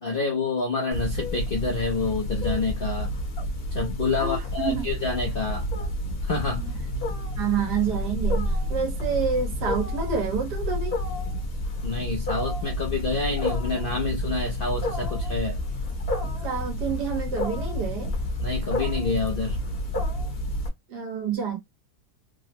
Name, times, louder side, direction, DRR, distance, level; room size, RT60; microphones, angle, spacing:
voice 1, 0.0-3.1 3.7-5.7 6.2-6.6 11.8-15.6 18.4-19.6, left 3 dB, 60° left, 0.5 m, -28 dB
Wild animals, 0.9-20.7, left 1 dB, 40° left, 1.1 m, -29 dB
voice 2, 4.2-4.9 6.5-6.7 7.4-11.0 16.4-18.2 20.9-21.6, right 7 dB, 80° right, 1.7 m, -28 dB
3.7 x 2.1 x 2.9 m
omnidirectional pair, 1.8 m